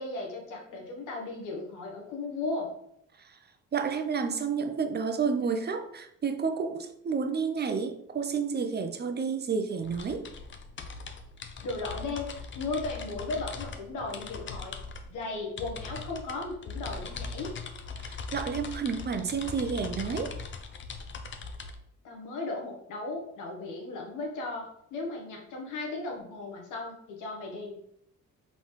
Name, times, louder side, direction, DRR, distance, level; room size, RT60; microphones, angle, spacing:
voice 1, 0.0-2.7 11.6-14.8 15.1-17.6 22.0-27.8, left 3 dB, 90° left, 0 dB, 1.2 m, -36 dB
voice 2, 3.7-10.3 18.0-20.3, right 5 dB, 35° right, 6 dB, 0.5 m, -30 dB
sound 1, 9.8-21.7, left 4 dB, 40° left, 0.5 m, -40 dB
3.9 x 3.9 x 3.1 m, 0.73 s
cardioid pair, 90°, 30 cm